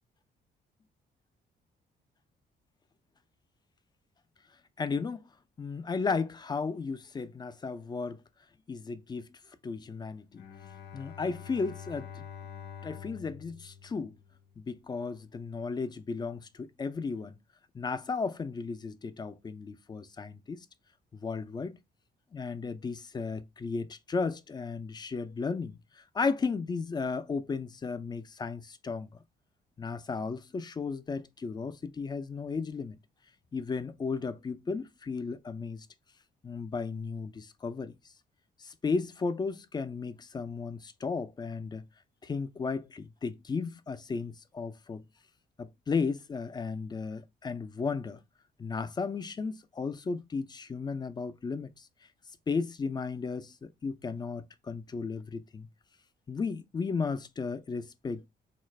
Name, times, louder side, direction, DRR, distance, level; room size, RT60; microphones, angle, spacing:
voice 1, 4.8-5.3 5.6-8.2 8.7-9.3 9.6-10.4 10.9-12.2 12.8-14.2 14.6-17.4 17.7-20.7 21.1-21.8 22.3-29.2 29.8-33.0 33.5-35.9 36.4-37.9 38.6-41.8 42.2-45.0 45.6-48.2 48.6-51.9 52.5-55.7 56.3-58.3, left 4 dB, 25° left, 0.4 m, -34 dB
Bowed string instrument, 10.3-14.7, left 7 dB, 75° left, 0.6 m, -46 dB
3.8 x 2.4 x 3.1 m
cardioid pair, 130°, 18 cm